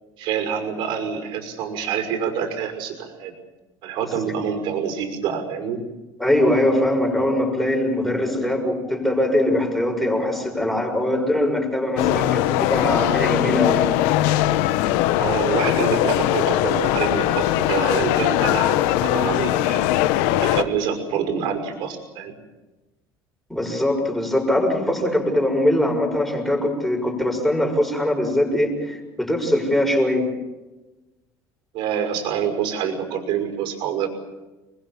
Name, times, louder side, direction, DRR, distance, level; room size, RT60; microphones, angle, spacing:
voice 1, 0.2-3.3 3.8-5.8 15.2-19.9 20.4-22.3 31.7-34.1, right 7 dB, 65° right, 6 dB, 5.7 m, -26 dB
voice 2, 6.2-14.0 23.5-30.3, left 1 dB, ahead, 1 dB, 6.0 m, -21 dB
sound 1, 12.0-20.6, left 14 dB, 90° left, 1.1 m, -20 dB
28.5 x 21.5 x 7.4 m, 1.1 s
cardioid pair, 145°, 9 cm